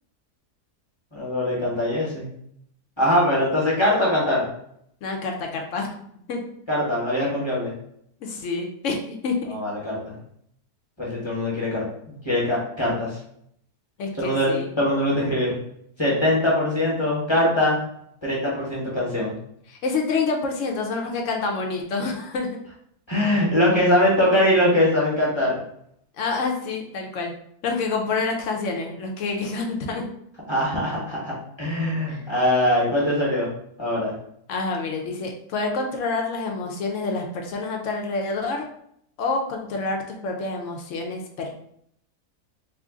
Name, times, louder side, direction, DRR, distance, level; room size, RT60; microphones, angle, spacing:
voice 1, 1.1-2.3 3.0-4.5 6.7-7.7 9.5-10.2 11.0-13.2 14.2-15.6 16.0-17.8 18.2-19.3 23.1-25.6 30.5-33.5 33.8-34.1, left 1 dB, 20° left, -6 dB, 1.0 m, -22 dB
voice 2, 5.0-5.9 6.3-6.4 8.2-9.6 14.0-14.7 19.7-22.5 26.2-27.3 27.6-30.0 32.1-32.2 34.5-38.6 39.2-41.5, left 3 dB, 70° left, 2 dB, 0.8 m, -27 dB
3.1 x 2.4 x 3.6 m, 0.70 s
omnidirectional pair, 1.7 m